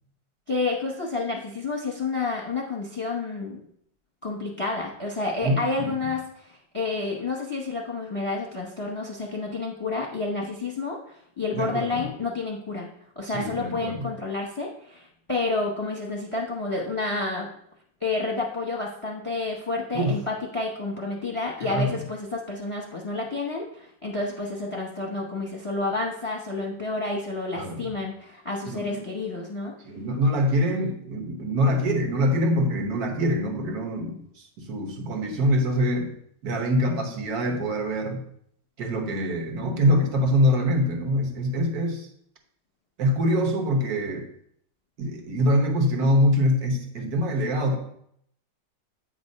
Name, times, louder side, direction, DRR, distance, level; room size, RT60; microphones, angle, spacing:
voice 1, 0.5-3.6 4.2-11.0 11.4-12.9 13.2-17.5 18.0-29.7, left 3 dB, 25° left, 0 dB, 0.6 m, -30 dB
voice 2, 11.5-12.1 13.3-14.0 19.9-20.2 21.6-22.0 27.6-27.9 28.7-29.0 29.8-36.1 36.4-38.2 38.8-42.1 43.0-44.3 45.0-47.8, equal, 60° right, 3 dB, 1.5 m, -24 dB
8.7 x 3.5 x 5.3 m, 0.70 s
omnidirectional pair, 1.9 m